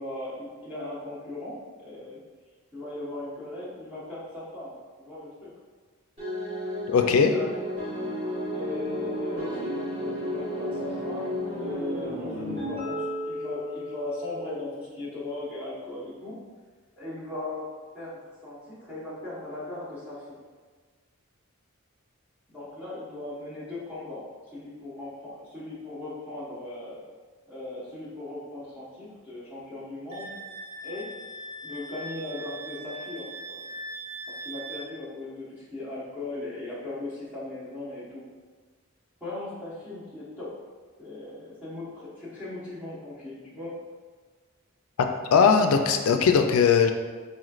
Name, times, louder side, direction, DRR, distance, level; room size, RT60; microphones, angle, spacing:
voice 1, 0.0-2.2 2.7-5.5 7.3-8.0 8.5-16.4 17.0-17.6 17.9-18.1 18.4-20.4 22.5-24.2 24.5-27.0 27.5-30.3 30.8-31.1 31.6-33.6 34.3-38.2 39.2-40.5 41.0-43.7, left 2 dB, 5° right, -12 dB, 1.0 m, -38 dB
Xbox-like startup music, 6.2-14.6, equal, 25° right, 1.4 m, -33 dB
voice 2, 6.9-7.3 45.3-46.9, left 6 dB, 80° left, 5 dB, 0.4 m, -19 dB
Wind instrument woodwind instrument, 30.1-34.9, right 2 dB, 75° right, 0.6 m, -40 dB
4.2 x 3.1 x 2.4 m, 1.5 s
head